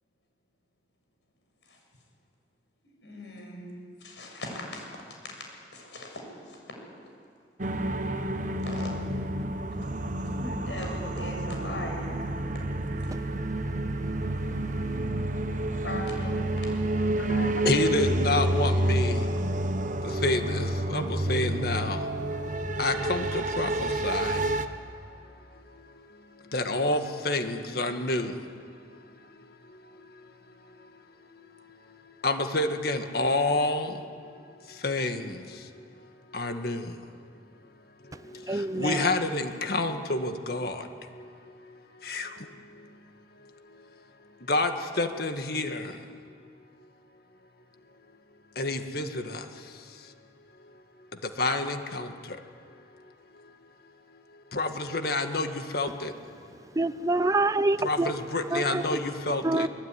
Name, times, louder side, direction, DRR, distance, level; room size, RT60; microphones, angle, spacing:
voice 1, 3.0-3.7 4.0-4.9 5.7-6.6 8.6-8.9 10.3-12.2 15.8-16.4, left 1 dB, 80° left, 7.4 m, -38 dB
sound 1, 7.6-24.7, right 1 dB, 45° right, 1.2 m, -29 dB
voice 2, 17.3-19.2 20.2-22.0 22.8-24.4 26.5-28.3 32.2-33.9 34.8-35.4 36.3-36.9 38.8-40.8 42.0-42.3 44.5-45.9 48.6-49.4 51.4-52.1 54.5-56.1 57.8-59.7, left 2 dB, 60° left, 1.8 m, -28 dB
voice 3, 38.5-38.9 56.8-58.1 58.5-58.6 59.4-59.7, right 2 dB, 20° right, 0.6 m, -25 dB
22.5 x 22.0 x 9.9 m
head